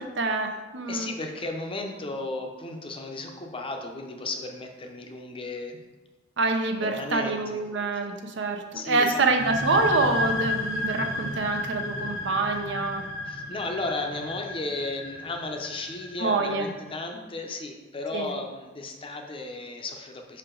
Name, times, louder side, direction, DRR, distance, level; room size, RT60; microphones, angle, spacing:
voice 1, 0.2-1.1 6.4-13.1 16.2-16.7 18.1-18.3, right 3 dB, 70° right, 5 dB, 0.7 m, -26 dB
voice 2, 0.9-5.8 6.8-7.7 8.7-9.3 13.2-20.4, left 2 dB, 30° left, 3 dB, 0.6 m, -34 dB
sound 1, 9.3-16.7, left 2 dB, 90° left, 0.8 m, -32 dB
5.8 x 4.6 x 3.8 m, 1.2 s
head